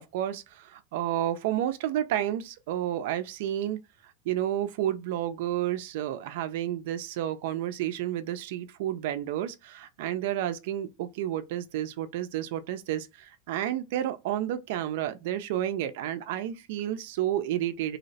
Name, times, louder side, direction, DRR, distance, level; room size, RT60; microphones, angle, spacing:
voice 1, 0.0-18.0, right 12 dB, 75° right, 0.4 m, -31 dB
2.7 x 2.0 x 4.0 m
supercardioid pair, 130°, 0 cm